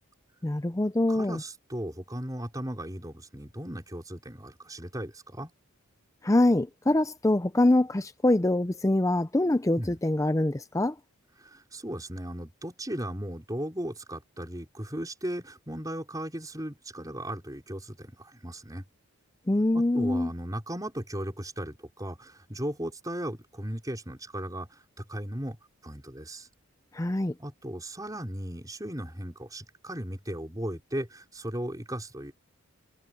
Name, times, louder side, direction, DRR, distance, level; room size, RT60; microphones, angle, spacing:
voice 1, 0.4-1.4 6.2-10.9 19.5-20.3 26.9-27.3, left 1 dB, 15° left, 0.5 m, -24 dB
voice 2, 1.1-5.5 9.8-10.0 11.4-18.8 19.7-25.6 25.8-26.5 27.4-32.3, right 1 dB, 15° right, 5.1 m, -36 dB
head